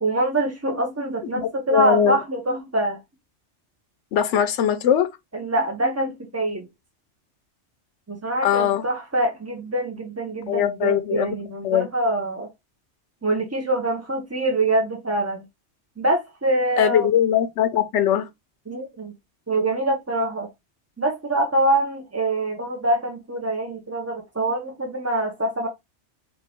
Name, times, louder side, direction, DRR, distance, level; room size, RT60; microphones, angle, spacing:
voice 1, 0.0-3.0 5.3-6.7 8.1-12.5 13.2-15.4 16.0-17.1 18.7-19.1 19.5-20.5 21.0-25.7, right 1 dB, 20° right, 0.4 m, -24 dB
voice 2, 1.4-2.2 4.1-5.1 8.4-8.8 10.5-11.3 11.6-11.9 16.8-18.3, left 9 dB, 75° left, 0.9 m, -21 dB
3.7 x 2.6 x 4.2 m
omnidirectional pair, 1.2 m